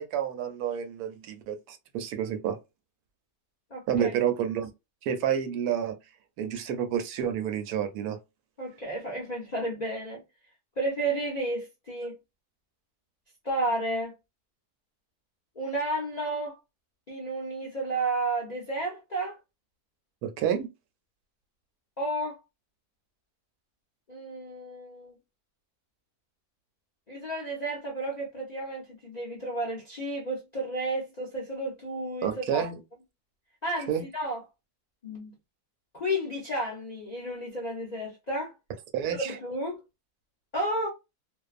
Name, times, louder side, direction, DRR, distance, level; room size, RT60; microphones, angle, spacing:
voice 1, 0.0-2.6 3.9-4.7 5.0-6.0 6.4-8.2 20.2-20.7 32.2-32.8 33.9-34.0 38.9-39.4, right 9 dB, 80° right, 1.1 m, -29 dB
voice 2, 3.7-4.1 8.6-10.2 10.8-12.2 13.4-14.1 15.6-16.6 17.1-19.4 22.0-22.4 24.1-25.1 27.1-32.7 33.6-34.4 35.0-35.3 35.9-38.5 39.1-39.8 40.5-40.9, right 1 dB, 55° left, 0.4 m, -32 dB
2.5 x 2.1 x 2.3 m
omnidirectional pair, 1.6 m